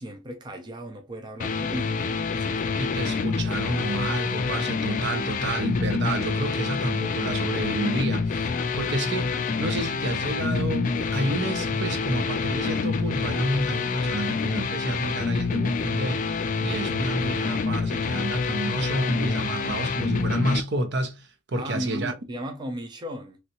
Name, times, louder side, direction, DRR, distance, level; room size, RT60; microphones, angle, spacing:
voice 1, 0.0-2.9 21.5-23.4, equal, 25° right, 0.4 m, -36 dB
sound 1, 1.4-20.6, left 4 dB, 40° left, 0.3 m, -27 dB
voice 2, 2.8-22.1, right 2 dB, 60° right, 0.7 m, -30 dB
3.1 x 2.7 x 2.8 m
head